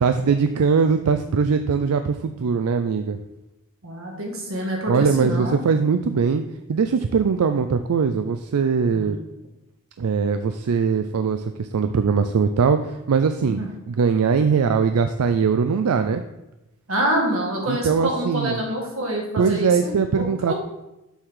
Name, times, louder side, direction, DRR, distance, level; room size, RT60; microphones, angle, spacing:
voice 1, 0.0-3.2 4.9-6.4 6.7-9.2 10.0-13.6 13.9-16.2 17.7-18.6 19.4-20.5, right 5 dB, 85° right, 9 dB, 0.4 m, -21 dB
voice 2, 3.8-5.6 8.9-9.1 13.5-13.7 16.9-20.3, right 1 dB, 65° right, -1 dB, 1.9 m, -26 dB
7.1 x 3.8 x 6.4 m, 0.95 s
head